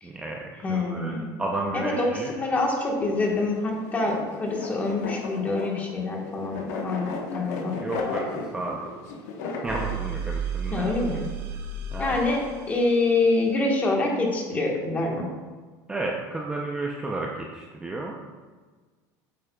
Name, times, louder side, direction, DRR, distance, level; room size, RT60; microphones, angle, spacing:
voice 1, 0.0-2.3 7.8-8.3 8.5-8.9 9.6-10.9 11.9-12.2 15.9-18.2, right 2 dB, 10° right, -1 dB, 0.5 m, -32 dB
voice 2, 0.6-1.3 1.7-7.8 10.7-11.2 12.0-15.3, left 2 dB, 20° left, 0 dB, 1.3 m, -26 dB
sound 1, 3.1-9.9, left 3 dB, 90° left, 1.1 m, -35 dB
sound 2, 9.7-13.2, right 6 dB, 70° right, 1.5 m, -33 dB
8.5 x 8.3 x 2.3 m, 1.4 s
cardioid pair, 155°, 9 cm